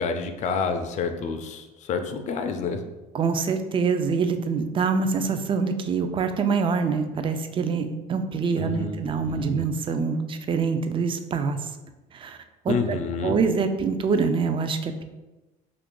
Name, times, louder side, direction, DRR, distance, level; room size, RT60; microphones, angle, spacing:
voice 1, 0.0-2.8 8.6-9.7 12.7-13.4, left 5 dB, 45° left, 6 dB, 0.4 m, -29 dB
voice 2, 3.1-11.7 12.1-12.4 12.6-13.0 13.2-15.0, right 5 dB, 30° right, 8 dB, 0.4 m, -25 dB
2.8 x 2.4 x 3.7 m, 1.1 s
supercardioid pair, 90°, 17 cm